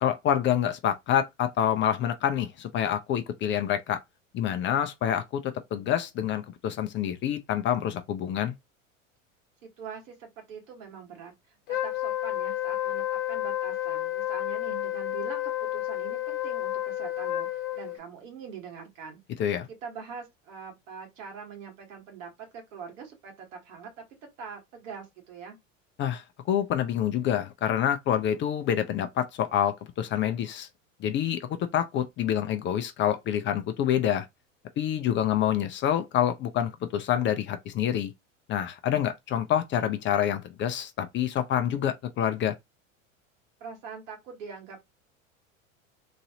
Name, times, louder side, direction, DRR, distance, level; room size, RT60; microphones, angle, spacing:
voice 1, 0.0-4.0 4.3-8.5 19.4-19.7 26.0-30.7 31.0-34.3 34.8-38.1 38.5-42.5, left 10 dB, 30° left, 0.5 m, -27 dB
voice 2, 9.8-11.6 11.8-19.2 19.8-23.9 24.4-25.6 43.6-44.8, right 6 dB, 70° right, 1.5 m, -43 dB
Wind instrument woodwind instrument, 11.7-18.0, left 14 dB, 50° left, 0.9 m, -31 dB
3.0 x 2.6 x 2.8 m
hypercardioid pair, 90°, 40 cm